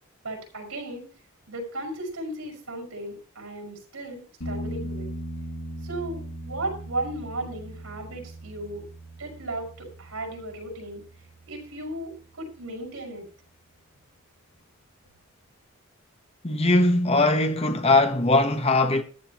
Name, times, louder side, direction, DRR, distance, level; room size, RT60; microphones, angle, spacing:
voice 1, 0.2-1.1 1.5-5.1 5.8-8.8 9.2-11.0 11.5-13.3, right 1 dB, 85° right, 5.6 m, -35 dB
sound 1, 4.4-12.0 15.1-15.2, right 1 dB, 80° left, 3.1 m, -39 dB
voice 2, 16.4-19.0, left 2 dB, 30° left, 1.1 m, -20 dB
14.0 x 12.5 x 3.0 m
head